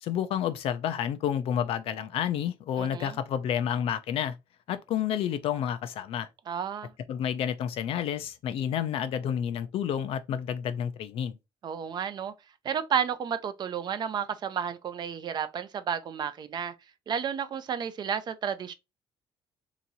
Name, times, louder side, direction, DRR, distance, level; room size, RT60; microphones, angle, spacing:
voice 1, 0.0-4.3 4.7-6.3 7.1-11.3, left 9 dB, 70° left, 0.5 m, -30 dB
voice 2, 2.8-3.2 6.5-6.9 11.6-12.3 12.6-16.7 17.1-18.7, right 8 dB, 45° right, 0.5 m, -32 dB
2.9 x 2.7 x 3.9 m
cardioid pair, 120°, 10 cm